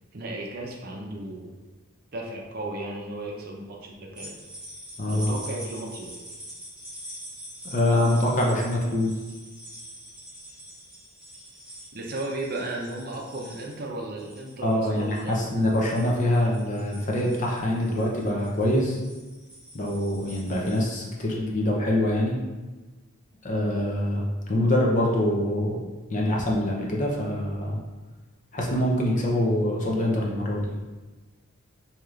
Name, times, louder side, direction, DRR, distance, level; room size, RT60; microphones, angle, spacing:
voice 1, 0.1-1.5 2.1-4.3 5.1-6.1 11.9-15.4, right 2 dB, 45° right, 0 dB, 0.5 m, -35 dB
sound 1, 4.2-20.9, equal, 5° right, 0.8 m, -45 dB
voice 2, 5.0-5.3 7.6-9.1 14.6-19.0 19.7-22.4 23.4-25.8 26.1-27.8 28.5-30.7, left 1 dB, 35° left, -2 dB, 0.6 m, -24 dB
4.6 x 2.8 x 2.4 m, 1.2 s
head